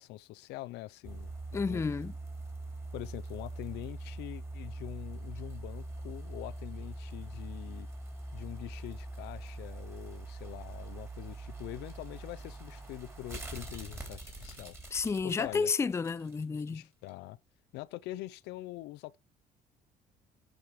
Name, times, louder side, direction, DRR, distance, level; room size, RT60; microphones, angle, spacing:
voice 1, 0.0-1.8 2.9-7.9 8.3-14.8 15.2-15.7 16.7-17.4 17.7-19.2, left 17 dB, 90° left, 0.6 m, -44 dB
sound 1, 1.0-16.7 17.1-17.2, right 2 dB, 15° right, 3.4 m, -43 dB
voice 2, 1.5-2.1 14.9-16.9, left 5 dB, 15° left, 0.4 m, -31 dB
11.0 x 5.1 x 4.7 m
cardioid pair, 110°, 17 cm